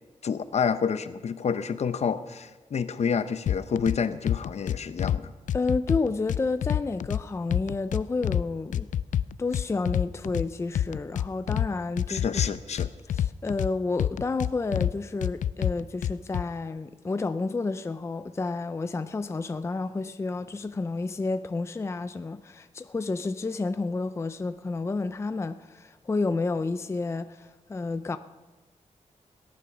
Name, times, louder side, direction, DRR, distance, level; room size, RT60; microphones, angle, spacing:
voice 1, 0.2-5.3 12.1-12.9, left 6 dB, 60° left, 0.7 m, -28 dB
sound 1, 3.5-4.0 4.3-5.2 5.5-7.2 7.5-8.4 8.7-10.5 10.7-11.7 12.0-13.7 14.0-14.9 15.2-16.4, left 10 dB, 85° left, 0.4 m, -27 dB
voice 2, 5.5-8.9 9.4-12.3 13.1-28.2, left 3 dB, 20° left, 0.5 m, -30 dB
18.0 x 11.0 x 6.1 m
wide cardioid pair, 165°, 13 cm